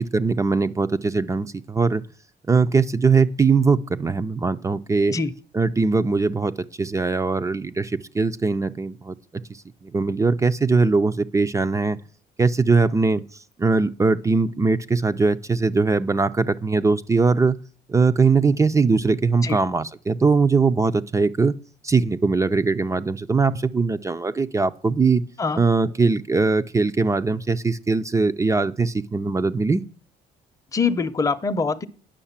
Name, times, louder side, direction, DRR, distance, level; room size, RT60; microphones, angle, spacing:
voice 1, 0.1-2.0 2.5-5.2 5.5-6.5 6.8-9.4 9.8-12.0 12.4-13.2 13.6-17.6 17.9-21.5 21.8-25.2 25.6-29.8, right 4 dB, 20° right, 0.5 m, -21 dB
voice 2, 30.7-31.9, left 4 dB, 20° left, 0.7 m, -23 dB
10.0 x 6.4 x 7.3 m
cardioid pair, 110°, 17 cm